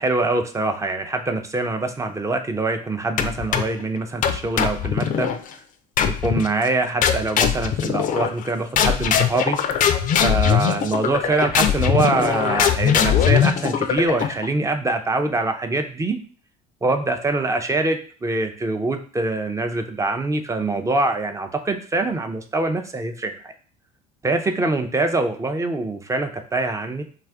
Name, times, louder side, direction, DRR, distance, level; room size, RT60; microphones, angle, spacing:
voice 1, 0.0-5.4 6.0-9.9 10.2-16.2 16.8-23.5 24.2-27.0, right 2 dB, 15° right, 6 dB, 0.5 m, -24 dB
sound 1, 3.2-3.8 4.2-5.4 6.0-6.5 7.0-8.5 8.8-14.5, left 8 dB, 45° left, 0.4 m, -21 dB
2.6 x 2.4 x 3.4 m, 0.41 s
hypercardioid pair, 75°, 19 cm